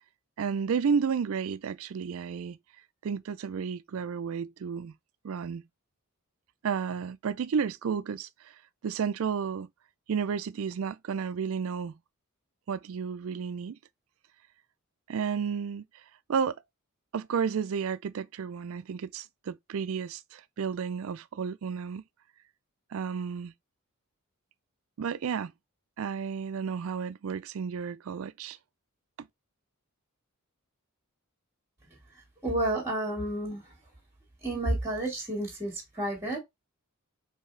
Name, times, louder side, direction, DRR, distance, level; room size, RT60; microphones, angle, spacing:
voice 1, 0.4-2.6 3.0-4.9 5.2-5.6 6.6-8.3 8.8-9.7 10.1-12.0 12.7-13.8 15.1-15.8 16.3-16.6 17.1-22.0 22.9-23.5 25.0-25.5 26.0-28.6 29.2-29.3, right 6 dB, 65° right, 0.4 m, -32 dB
voice 2, 32.4-33.7 34.4-36.4, right 1 dB, 15° right, 1.7 m, -30 dB
4.6 x 3.3 x 3.2 m
head